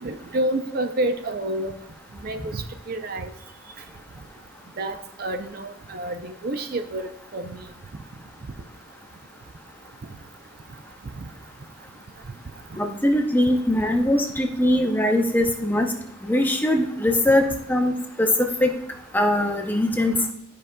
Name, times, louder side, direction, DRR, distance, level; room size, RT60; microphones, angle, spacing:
voice 1, 0.0-1.7 2.2-3.3 4.8-7.6, right 1 dB, 45° right, 8 dB, 0.5 m, -29 dB
voice 2, 12.8-15.9 16.2-17.9 18.2-18.7 19.1-20.1, left 1 dB, 10° left, 3 dB, 0.5 m, -21 dB
12.5 x 5.1 x 2.2 m, 0.73 s
head